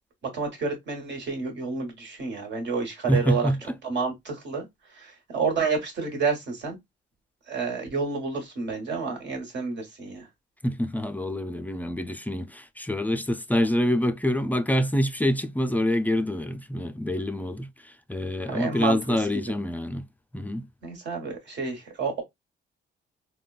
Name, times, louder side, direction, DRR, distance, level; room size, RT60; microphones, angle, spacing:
voice 1, 0.3-3.5 3.8-4.6 5.0-6.8 7.5-10.3 18.5-19.0 20.8-22.2, right 4 dB, 65° right, 1.4 m, -29 dB
voice 2, 3.1-3.7 10.6-20.1 20.3-20.7, equal, 10° left, 0.3 m, -26 dB
3.7 x 2.2 x 2.3 m
cardioid pair, 90°, 20 cm